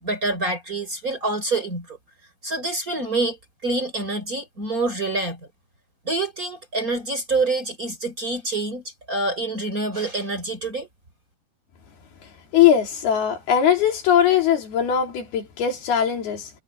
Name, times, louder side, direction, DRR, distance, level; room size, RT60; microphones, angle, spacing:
voice 1, 0.0-2.0 2.4-3.4 3.6-5.4 6.0-10.9, right 2 dB, 20° right, 4.0 m, -26 dB
voice 2, 12.5-16.5, left 9 dB, 70° left, 5.1 m, -20 dB
omnidirectional pair, 4.6 m